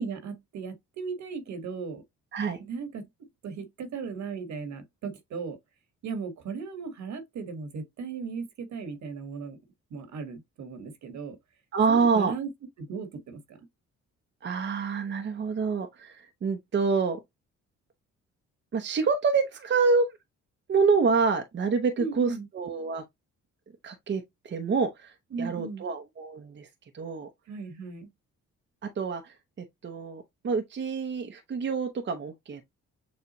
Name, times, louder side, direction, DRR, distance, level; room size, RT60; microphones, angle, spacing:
voice 1, 0.0-2.0 2.6-3.1 3.4-5.6 6.0-9.6 9.9-11.4 11.9-12.5 12.8-13.6 22.0-22.5 25.3-25.8 27.5-28.1, right 5 dB, 70° right, 1.4 m, -36 dB
voice 2, 11.7-12.4 14.4-17.2 18.7-20.2 20.7-23.0 23.8-26.7 26.9-27.3 28.8-32.6, right 5 dB, 40° right, 0.8 m, -27 dB
6.9 x 2.4 x 2.9 m
cardioid pair, 90°, 30 cm